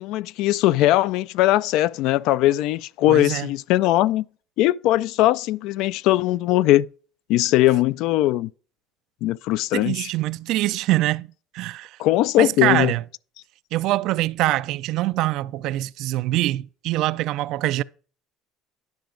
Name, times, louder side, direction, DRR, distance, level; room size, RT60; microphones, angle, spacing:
voice 1, 0.0-4.3 4.6-6.9 7.3-8.5 9.2-10.1 12.0-12.9, left 15 dB, 70° left, 0.3 m, -20 dB
voice 2, 3.1-3.5 9.7-12.0 12.4-13.0 13.7-17.8, right 16 dB, 65° right, 0.3 m, -24 dB
10.5 x 5.8 x 3.8 m
cardioid pair, 125°, 0 cm